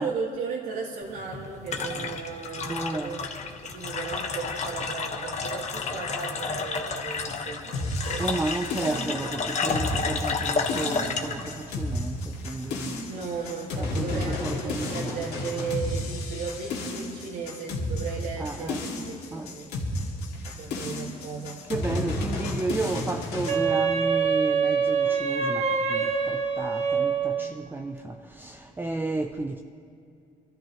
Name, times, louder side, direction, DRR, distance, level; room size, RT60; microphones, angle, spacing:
voice 1, 0.0-3.2 3.6-8.3 9.2-9.3 13.1-19.7 20.4-21.6, right 5 dB, 80° right, 2.0 m, -36 dB
sound 1, 1.0-12.7, left 4 dB, 40° left, 1.3 m, -31 dB
voice 2, 2.6-3.2 8.2-13.0 13.8-15.2 15.6-15.7 18.4-19.0 19.3-19.5 21.7-29.6, right 2 dB, 10° right, 0.5 m, -32 dB
sound 2, 7.7-23.6, left 2 dB, 80° left, 2.4 m, -32 dB
Wind instrument woodwind instrument, 23.5-27.6, right 6 dB, 40° right, 1.2 m, -25 dB
24.0 x 13.5 x 3.1 m
cardioid pair, 110°, 17 cm